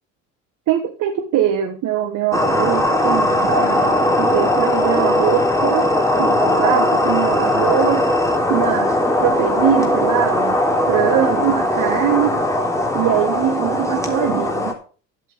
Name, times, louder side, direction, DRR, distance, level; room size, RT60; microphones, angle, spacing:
voice 1, 0.7-5.9 6.2-8.1 8.5-10.6 10.9-12.4 12.9-14.8, right 11 dB, 55° right, 1.6 m, -22 dB
sound 1, 2.3-14.7, left 1 dB, 10° left, 3.4 m, -19 dB
11.0 x 8.3 x 5.5 m
hypercardioid pair, 70°, 38 cm